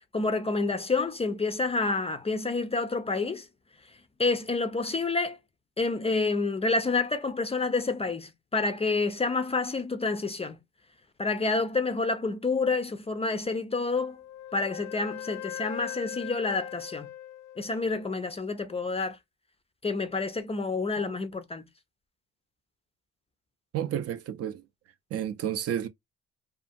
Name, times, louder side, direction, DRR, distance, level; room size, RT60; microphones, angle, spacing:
voice 1, 0.1-3.5 4.2-5.4 5.8-10.6 11.2-14.2 14.5-17.1 17.6-19.2 19.8-21.7, left 3 dB, 20° left, 0.3 m, -28 dB
Wind instrument woodwind instrument, 13.9-18.1, left 12 dB, 80° left, 0.5 m, -40 dB
voice 2, 23.7-24.6 25.1-25.9, right 10 dB, 55° right, 0.4 m, -31 dB
2.5 x 2.4 x 2.5 m
cardioid pair, 90°, 30 cm